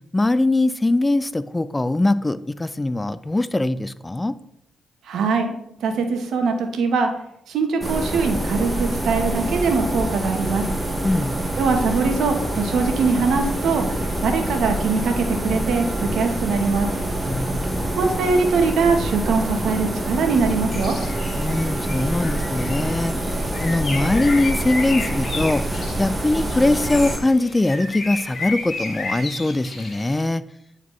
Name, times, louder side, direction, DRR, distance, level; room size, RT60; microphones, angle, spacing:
voice 1, 0.1-4.4 11.0-11.3 17.2-17.9 21.4-23.1 23.6-25.6 26.0-30.4, left 2 dB, 20° left, 15 dB, 0.4 m, -21 dB
voice 2, 5.1-5.5 5.8-7.1 7.5-10.7 11.6-14.0 14.2-15.9 16.1-16.9 18.0-21.0, right 4 dB, 80° right, 4 dB, 1.0 m, -22 dB
sound 1, 7.8-27.2, right 1 dB, 20° right, 1.1 m, -26 dB
Bird, 20.7-30.3, left 3 dB, 55° left, 1.3 m, -33 dB
9.0 x 4.0 x 3.1 m, 0.75 s
cardioid pair, 65°, 0 cm